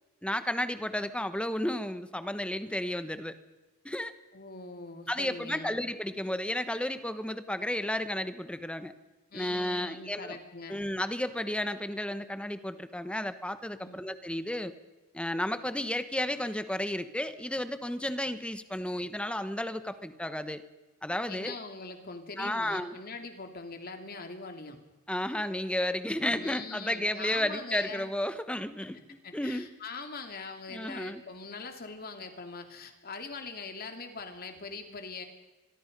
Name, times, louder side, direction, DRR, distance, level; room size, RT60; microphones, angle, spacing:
voice 1, 0.2-3.3 3.8-4.1 5.1-8.9 9.3-10.4 10.7-14.7 15.1-20.6 21.0-21.5 22.4-22.9 25.1-29.7 30.7-31.2, left 1 dB, 5° left, 11 dB, 1.2 m, -32 dB
voice 2, 4.3-5.8 9.3-10.8 13.8-14.0 21.3-24.8 26.3-28.1 28.9-35.2, left 4 dB, 45° left, 5 dB, 2.9 m, -42 dB
25.5 x 22.0 x 5.4 m, 1.1 s
head